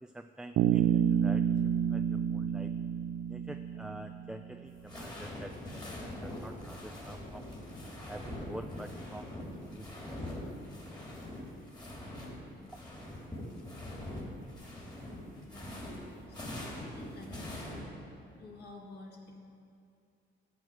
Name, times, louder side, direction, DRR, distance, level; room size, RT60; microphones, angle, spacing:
voice 1, 0.0-2.7 3.3-7.5 8.1-9.3 9.7-10.2 12.7-12.8, right 1 dB, 5° right, 6 dB, 0.4 m, -47 dB
Bass guitar, 0.6-4.4, right 9 dB, 85° right, 0.5 m, -29 dB
sound 1, 4.7-12.3 12.6-17.8, left 1 dB, 20° left, 3.1 m, -43 dB
voice 2, 15.3-15.8 16.3-17.7 18.4-19.4, left 2 dB, 55° left, 0 dB, 2.0 m, -50 dB
11.0 x 6.2 x 8.2 m, 2.4 s
cardioid pair, 90°, 20 cm